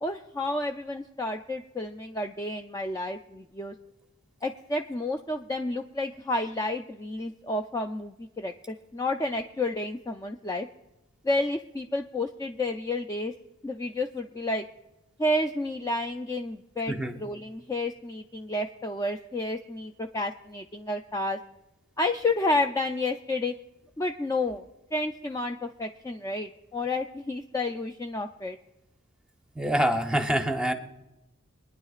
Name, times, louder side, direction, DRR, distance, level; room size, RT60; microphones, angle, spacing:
voice 1, 0.0-3.7 4.4-10.7 11.2-13.3 13.6-14.6 15.2-16.9 17.2-21.4 22.0-23.5 24.0-24.6 24.9-28.6, left 2 dB, 15° left, 4 dB, 0.3 m, -30 dB
voice 2, 29.5-30.7, right 1 dB, 5° right, 5 dB, 0.7 m, -25 dB
24.0 x 9.9 x 2.4 m, 0.95 s
head